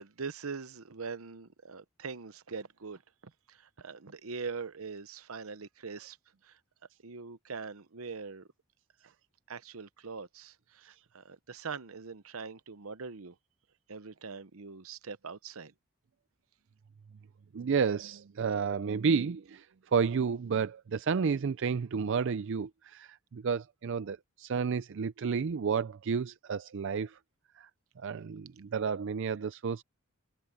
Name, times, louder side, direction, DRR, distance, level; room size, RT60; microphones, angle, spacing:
voice 1, 0.0-3.0 3.5-6.2 7.0-8.5 9.5-13.3 13.9-15.7, right 5 dB, 80° right, 0.9 m, -42 dB
voice 2, 17.5-19.7 19.9-27.2 27.6-27.7 28.0-29.8, right 6 dB, 60° right, 0.4 m, -31 dB
head